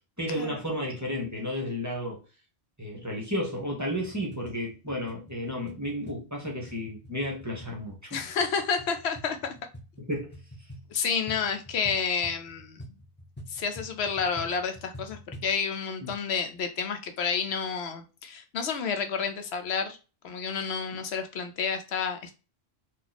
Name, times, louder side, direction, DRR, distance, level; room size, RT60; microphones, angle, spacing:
voice 1, 0.2-2.2 2.8-8.2 10.0-10.3 16.0-16.1, equal, 15° right, 1.0 m, -32 dB
sound 1, 3.9-15.6, equal, 15° left, 0.6 m, -47 dB
voice 2, 8.1-9.5 10.9-12.8 13.5-20.0 20.2-22.3, left 6 dB, 75° left, 0.9 m, -30 dB
2.9 x 2.5 x 4.0 m
omnidirectional pair, 1.1 m